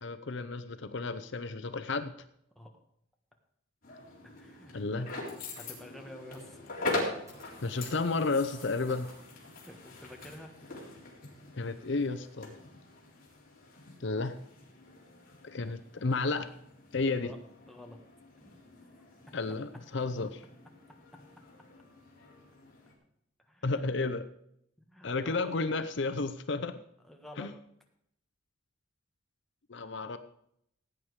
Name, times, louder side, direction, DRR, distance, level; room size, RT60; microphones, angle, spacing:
voice 1, 0.0-2.1 4.7-5.1 7.6-9.1 11.5-12.5 14.0-14.4 15.4-16.5 16.9-17.3 19.3-20.4 23.6-24.3 25.0-26.8 27.4-27.5 29.7-30.2, left 3 dB, 65° left, 11 dB, 0.7 m, -32 dB
sound 1, 3.8-22.9, left 2 dB, 45° left, 3.6 m, -43 dB
voice 2, 4.4-5.1 5.5-6.7 9.6-10.5 17.2-17.4 17.7-18.0 18.4-19.4 23.4-23.8 24.8-25.5 27.1-27.5, left 1 dB, ahead, 2 dB, 1.6 m, -50 dB
sound 2, 7.2-9.4, right 1 dB, 15° right, 6.0 m, -55 dB
16.5 x 8.9 x 4.8 m, 0.73 s
head